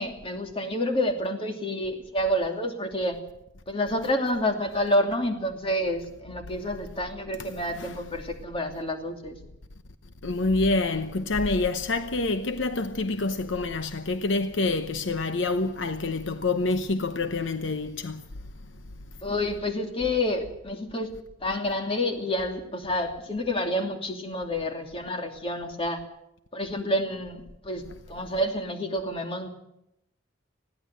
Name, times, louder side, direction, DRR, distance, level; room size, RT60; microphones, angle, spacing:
voice 1, 0.0-3.2 3.7-9.4 19.2-21.1 21.4-26.0 26.5-29.5, left 1 dB, 30° left, 2.8 m, -29 dB
voice 2, 7.4-8.0 10.2-18.2, left 3 dB, 70° left, 0.9 m, -27 dB
20.5 x 16.0 x 7.8 m
head